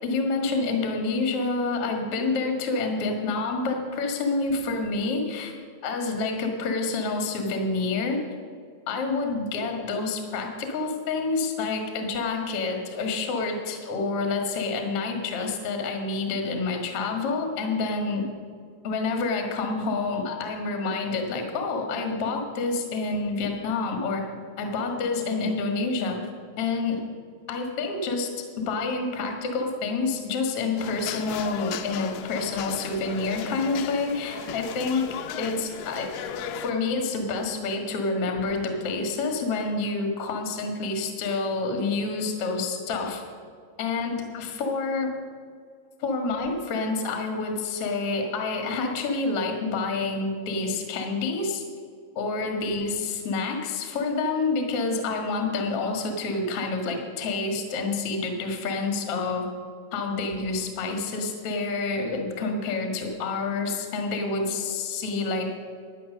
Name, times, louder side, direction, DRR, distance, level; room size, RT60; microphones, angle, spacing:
voice 1, 0.0-5.5 5.8-8.2 8.9-18.2 18.8-24.2 24.6-26.2 26.6-27.0 27.5-28.3 28.6-36.1 36.6-43.2 43.8-45.2 46.0-51.6 52.1-59.5 59.9-65.5, left 3 dB, 70° left, 3 dB, 1.4 m, -28 dB
sound 1, 30.8-36.7, left 8 dB, 90° left, 2.3 m, -36 dB
12.0 x 9.2 x 6.4 m, 2.1 s
omnidirectional pair, 5.4 m